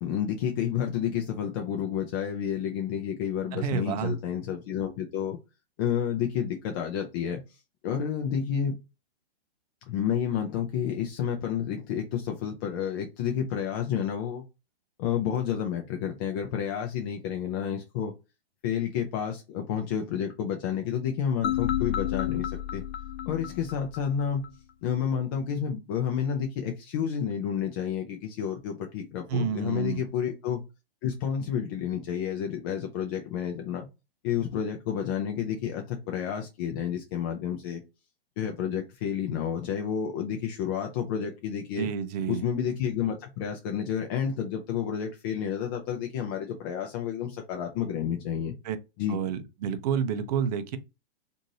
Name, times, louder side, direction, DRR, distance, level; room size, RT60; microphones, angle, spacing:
voice 1, 0.0-5.4 5.8-7.4 7.8-8.8 9.9-14.4 15.0-18.1 18.6-22.8 23.3-24.4 24.8-30.6 31.0-33.9 34.2-37.8 38.4-41.9 42.3-48.6 49.0-49.2, left 8 dB, 20° left, 0.4 m, -30 dB
voice 2, 3.5-4.2 29.3-30.0 41.8-42.4 48.6-48.8 49.1-50.8, right 7 dB, 40° right, 0.6 m, -29 dB
sound 1, 21.4-24.5, left 11 dB, 80° left, 0.7 m, -31 dB
3.0 x 2.6 x 2.7 m
hypercardioid pair, 150°, 31 cm